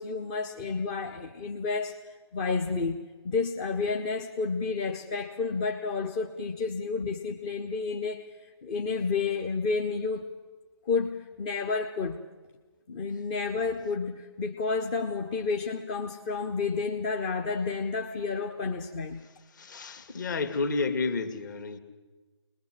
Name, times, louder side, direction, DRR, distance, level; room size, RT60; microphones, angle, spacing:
voice 1, 0.0-10.3 10.9-12.2 12.9-19.2, left 4 dB, 15° left, 4 dB, 0.7 m, -31 dB
voice 2, 19.5-21.8, left 3 dB, 40° left, 9 dB, 2.1 m, -30 dB
22.5 x 20.5 x 7.7 m, 1.3 s
figure-of-eight pair, 155°, 15 cm